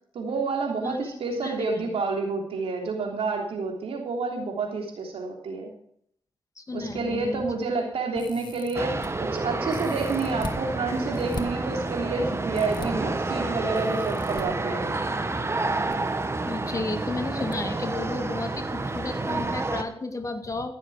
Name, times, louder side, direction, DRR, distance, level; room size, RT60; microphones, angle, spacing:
voice 1, 0.1-5.7 6.7-15.0, right 3 dB, 75° right, 1 dB, 3.4 m, -29 dB
voice 2, 6.6-7.4 16.4-20.7, left 2 dB, 35° left, 6 dB, 2.1 m, -32 dB
sound 1, 8.1-9.1 9.7-10.6 11.1-11.4 12.5-12.9 13.7-14.4 15.6-16.0 16.2-16.3 17.5-17.6 18.0-18.1, left 4 dB, 50° left, 1.9 m, -40 dB
sound 2, 8.7-19.8, right 2 dB, 25° right, 1.4 m, -29 dB
16.0 x 7.4 x 5.0 m, 0.65 s
cardioid pair, 60°, 10 cm